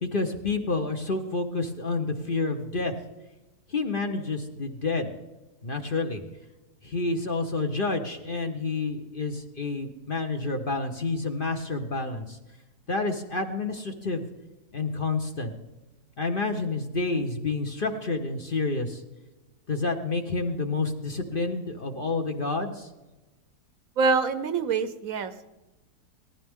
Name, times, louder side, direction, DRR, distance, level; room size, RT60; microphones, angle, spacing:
voice 1, 0.0-2.9 3.7-5.1 5.6-6.2 6.8-12.4 12.9-14.2 14.7-15.5 16.2-19.0 19.7-22.9, left 3 dB, 40° left, 5 dB, 1.0 m, -29 dB
voice 2, 24.0-25.5, right 4 dB, 65° right, 11 dB, 1.1 m, -25 dB
18.5 x 14.5 x 3.6 m, 1.1 s
omnidirectional pair, 1.7 m